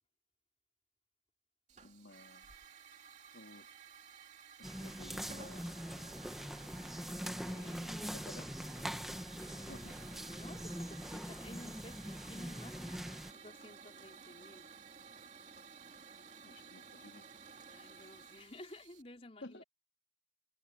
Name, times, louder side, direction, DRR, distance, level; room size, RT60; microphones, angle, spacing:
Hiss / Fire, 1.7-19.0, right 5 dB, 40° right, 2.6 m, -55 dB
voice 1, 1.8-2.5 3.3-3.7 4.6-5.7 7.4-8.5 9.5-10.0 16.4-17.3 19.4-19.6, left 2 dB, 85° left, 3.5 m, -54 dB
sound 1, 4.6-13.3, equal, ahead, 1.1 m, -43 dB
voice 2, 9.4-14.7 17.7-19.6, left 1 dB, 35° left, 3.9 m, -54 dB
head